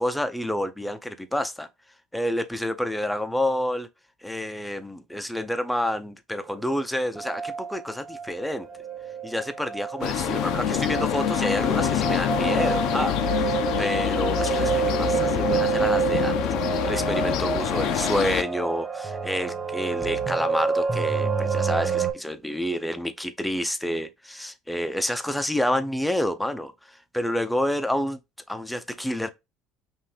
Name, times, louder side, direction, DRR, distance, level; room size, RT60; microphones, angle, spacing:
voice 1, 0.0-1.7 2.1-3.9 4.2-8.7 9.2-13.1 13.4-28.2 28.5-29.3, left 1 dB, 5° left, 0.6 m, -29 dB
sound 1, 6.6-6.7 7.2-7.8 8.1-22.1, right 6 dB, 20° right, 1.4 m, -28 dB
sound 2, 10.0-18.4, left 11 dB, 65° left, 0.6 m, -26 dB
5.5 x 2.6 x 3.4 m
cardioid pair, 120°, 0 cm